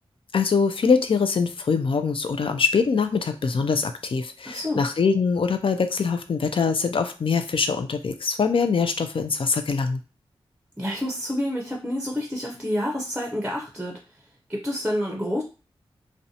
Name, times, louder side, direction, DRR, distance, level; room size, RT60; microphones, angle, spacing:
voice 1, 0.3-10.0, left 5 dB, 60° left, 8 dB, 0.4 m, -23 dB
voice 2, 4.5-4.8 10.8-14.0 14.5-15.4, left 1 dB, 10° right, 0 dB, 0.6 m, -28 dB
2.6 x 2.1 x 2.7 m, 0.33 s
cardioid pair, 45°, 10 cm